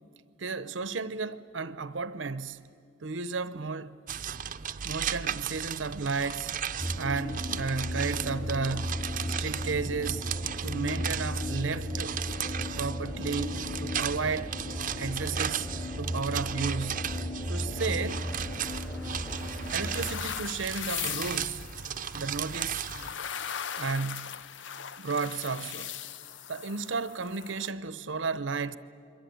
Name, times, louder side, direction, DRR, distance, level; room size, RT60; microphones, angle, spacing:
voice 1, 0.4-2.7 3.0-4.0 4.8-6.6 7.0-10.2 10.6-12.1 12.8-14.5 14.9-15.7 16.0-17.2 17.5-18.3 19.7-21.7 22.1-22.9 23.8-24.5 25.0-26.0 26.5-28.8, right 4 dB, 85° right, 0.8 m, -33 dB
sound 1, 4.1-23.1, right 8 dB, 45° right, 0.6 m, -36 dB
sound 2, 6.8-20.1, left 1 dB, 30° left, 1.9 m, -35 dB
sound 3, 18.1-27.7, left 8 dB, 75° left, 0.7 m, -40 dB
27.5 x 23.0 x 9.3 m
head